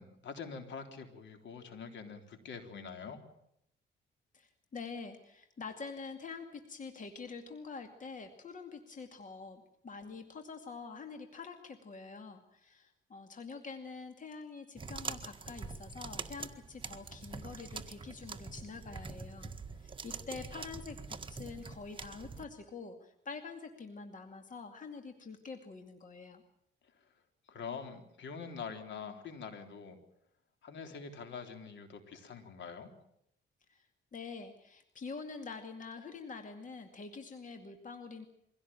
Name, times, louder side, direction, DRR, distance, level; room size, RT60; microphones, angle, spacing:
voice 1, 0.0-3.2 27.5-30.0 30.6-32.9, left 5 dB, 65° left, 6 dB, 3.7 m, -45 dB
voice 2, 4.3-19.5 19.7-26.4 33.7-38.3, left 4 dB, 40° left, 6 dB, 2.4 m, -46 dB
sound 1, 14.8-22.5, right 4 dB, 25° right, 1.7 m, -44 dB
23.5 x 17.0 x 9.0 m, 0.75 s
cardioid pair, 90°, 20 cm